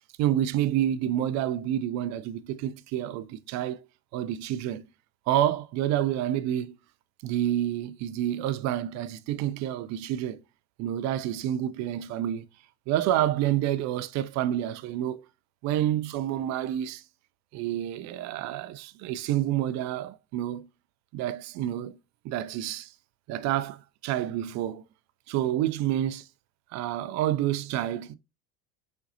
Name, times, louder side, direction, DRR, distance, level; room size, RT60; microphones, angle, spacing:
voice 1, 0.2-3.9 4.1-4.8 5.3-6.8 7.2-10.4 10.8-12.4 12.9-15.3 15.6-17.0 17.5-20.7 21.1-22.0 22.2-22.9 23.3-24.8 25.3-26.3 26.7-28.2, right 12 dB, 40° right, 0.5 m, -28 dB
4.6 x 4.4 x 2.6 m
hypercardioid pair, 75°, 47 cm